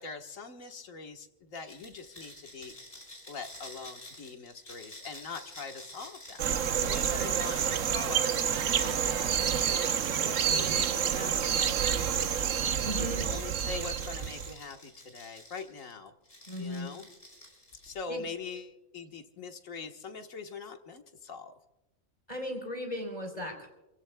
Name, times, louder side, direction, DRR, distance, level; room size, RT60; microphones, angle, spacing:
voice 1, 0.0-2.8 3.3-12.3 12.9-16.1 16.6-17.1 17.8-21.5, left 4 dB, 80° left, 4 dB, 1.8 m, -43 dB
sound 1, 1.6-11.3 11.9-15.8 16.2-18.1, left 1 dB, 50° left, 5.5 m, -50 dB
sound 2, 6.4-14.5, right 8 dB, 75° right, 1.1 m, -29 dB
voice 2, 7.0-7.3 12.8-13.3 16.5-16.9 18.1-18.3 22.3-23.7, equal, 30° left, 2 dB, 4.1 m, -36 dB
28.0 x 16.0 x 2.3 m, 1.0 s
omnidirectional pair, 1.3 m